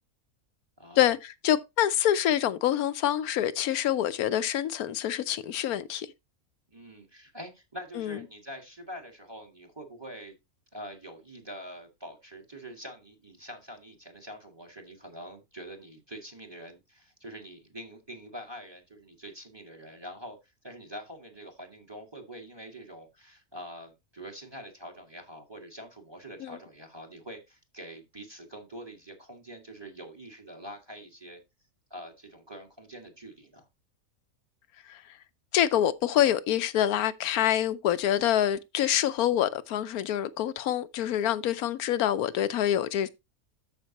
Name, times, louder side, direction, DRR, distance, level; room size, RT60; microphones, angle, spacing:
voice 1, 0.8-1.2 6.7-10.4 10.7-20.4 20.6-31.4 31.9-33.7, equal, 15° right, 1.8 m, -45 dB
voice 2, 1.4-6.1 8.0-8.2 26.4-26.5 34.9-35.0 35.5-43.1, left 11 dB, 80° left, 1.2 m, -26 dB
13.5 x 5.2 x 2.9 m
omnidirectional pair, 1.5 m